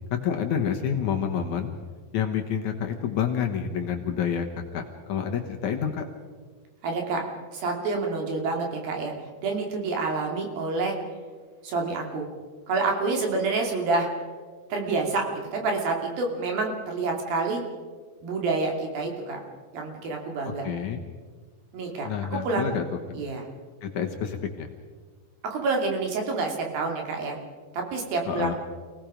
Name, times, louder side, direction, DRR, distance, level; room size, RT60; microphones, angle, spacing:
voice 1, 0.1-1.7 2.1-4.5 4.7-6.0 20.6-21.0 22.0-22.8 23.8-24.7 28.3-28.5, left 8 dB, 60° left, 3 dB, 2.3 m, -28 dB
voice 2, 6.8-7.2 7.5-9.1 9.4-11.0 11.6-12.3 12.7-14.1 14.7-17.6 18.2-19.4 19.7-20.7 21.7-22.7 23.1-23.4 25.4-27.4 27.7-28.5, right 3 dB, 75° right, 2 dB, 4.5 m, -28 dB
28.5 x 18.0 x 5.1 m, 1.5 s
omnidirectional pair, 4.3 m